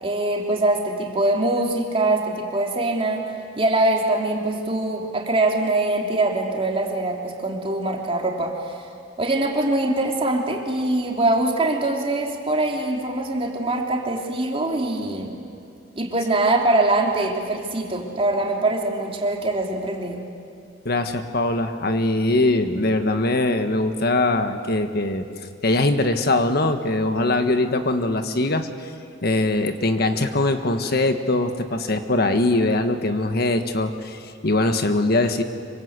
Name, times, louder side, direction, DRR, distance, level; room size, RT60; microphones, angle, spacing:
voice 1, 0.0-3.2 3.5-8.8 9.2-15.4 16.0-20.2, right 2 dB, 30° right, 0 dB, 3.2 m, -23 dB
voice 2, 20.8-25.3 25.6-28.9 29.2-35.4, left 2 dB, 55° left, 7 dB, 1.4 m, -22 dB
26.0 x 24.0 x 8.2 m, 2.4 s
head